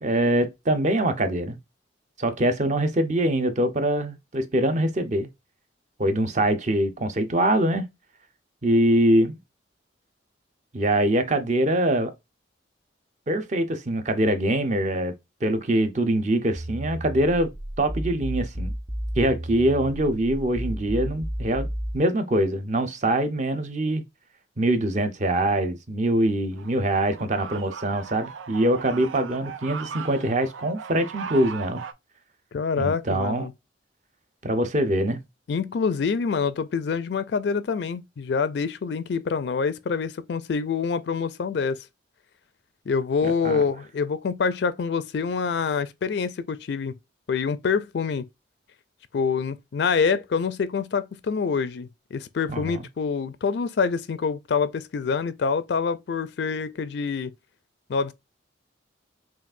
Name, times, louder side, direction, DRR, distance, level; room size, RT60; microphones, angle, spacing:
voice 1, 0.0-1.6 2.2-5.3 6.0-7.9 8.6-9.4 10.7-12.1 13.3-15.1 15.4-17.5 17.8-18.7 19.2-21.7 21.9-24.0 24.6-31.8 32.8-33.5 34.4-35.2 43.2-43.6 52.5-52.9, right 1 dB, 40° right, 0.7 m, -23 dB
sound 1, 16.6-22.0, equal, 10° right, 0.3 m, -32 dB
sound 2, 26.5-31.9, right 6 dB, 90° right, 0.5 m, -38 dB
voice 2, 32.5-33.5 35.5-41.8 42.9-46.9 47.3-48.2 49.1-57.3 57.9-58.1, left 5 dB, 60° left, 0.4 m, -26 dB
5.8 x 2.4 x 2.5 m
head